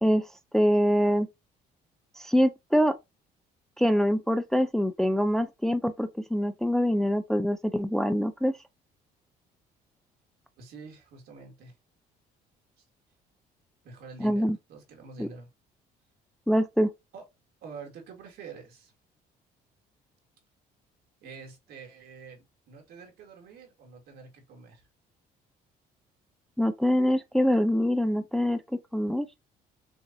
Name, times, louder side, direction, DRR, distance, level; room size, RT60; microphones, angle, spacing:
voice 1, 0.5-1.3 2.2-2.9 3.8-8.5 14.2-14.6 15.2-15.3 16.5-16.9 26.6-29.3, equal, 5° left, 0.4 m, -24 dB
voice 2, 10.6-11.7 13.8-15.5 17.1-17.2 17.6-18.9 21.2-24.8, right 5 dB, 75° right, 2.0 m, -47 dB
6.1 x 2.5 x 2.7 m
cardioid pair, 110°, 17 cm